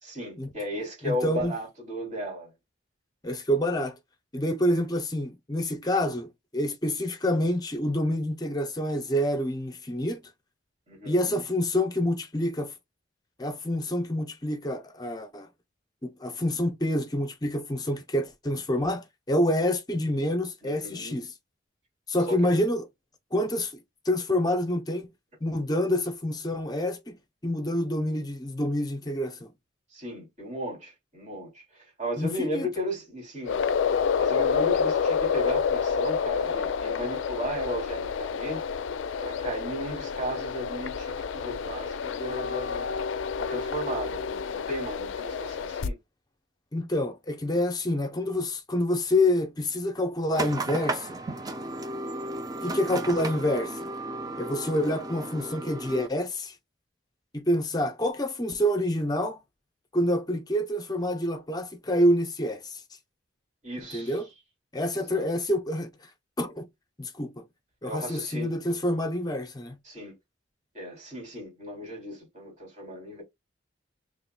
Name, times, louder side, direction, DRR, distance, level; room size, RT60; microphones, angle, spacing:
voice 1, 0.0-2.5 10.9-11.4 20.6-21.2 22.3-22.6 29.9-33.6 34.2-38.6 39.2-42.9 43.4-46.0 63.6-64.2 64.9-65.3 67.8-68.6 69.8-70.2 70.7-73.2, equal, 40° right, 2.9 m, -35 dB
voice 2, 1.0-1.5 3.2-4.0 4.3-10.2 11.1-12.7 13.4-15.5 16.0-21.3 22.1-22.9 23.3-23.7 24.0-25.1 25.4-27.2 27.4-29.5 32.2-32.7 46.7-51.2 52.6-53.9 54.4-56.5 57.3-59.4 59.9-62.8 63.9-64.2 64.7-65.9 66.4-66.7 67.0-67.4 67.8-69.8, left 1 dB, 20° left, 0.7 m, -27 dB
sound 1, 33.4-45.9, left 6 dB, 80° left, 0.4 m, -29 dB
sound 2, 50.3-56.1, right 2 dB, 20° right, 0.4 m, -34 dB
5.7 x 3.1 x 2.2 m
head